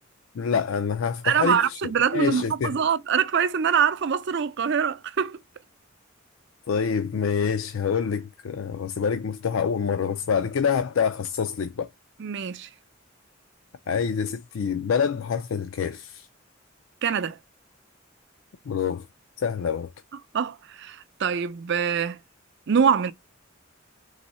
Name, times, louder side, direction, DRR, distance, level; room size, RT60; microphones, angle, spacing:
voice 1, 0.3-2.8 6.7-11.9 13.9-16.3 18.7-19.1 19.4-19.9, left 6 dB, 75° left, 0.4 m, -26 dB
voice 2, 1.2-5.4 12.2-12.7 17.0-17.4 20.3-22.2 22.7-23.1, right 7 dB, 60° right, 0.5 m, -24 dB
4.0 x 2.7 x 4.1 m
head